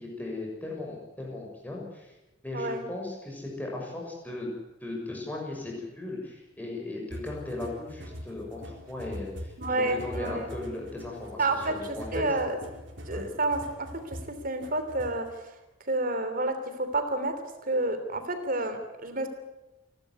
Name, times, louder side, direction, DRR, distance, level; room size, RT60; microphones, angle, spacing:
voice 1, 0.0-2.1 2.4-4.5 4.8-9.5 10.0-12.2 13.1-13.3, left 2 dB, 10° left, -2 dB, 6.6 m, -37 dB
sound 1, 7.1-15.3, equal, 65° right, 4.2 m, -43 dB
voice 2, 9.6-10.5 11.4-12.6 13.1-14.2 14.4-15.5 15.9-17.3 17.7-19.3, right 2 dB, 45° right, 8 dB, 3.1 m, -29 dB
28.5 x 12.5 x 9.6 m, 1.0 s
head